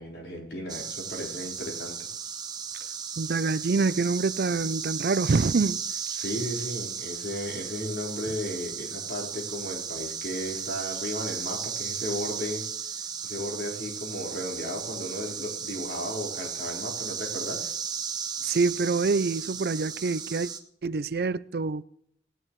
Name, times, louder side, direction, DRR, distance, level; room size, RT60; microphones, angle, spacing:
voice 1, 0.0-2.0 6.2-12.7 13.2-17.7, equal, 70° left, 4.5 m, -35 dB
sound 1, 0.7-20.6, right 6 dB, 25° right, 1.0 m, -35 dB
voice 2, 3.2-5.8 18.4-20.5 20.8-21.8, right 4 dB, 60° right, 0.4 m, -26 dB
19.0 x 10.0 x 3.2 m
head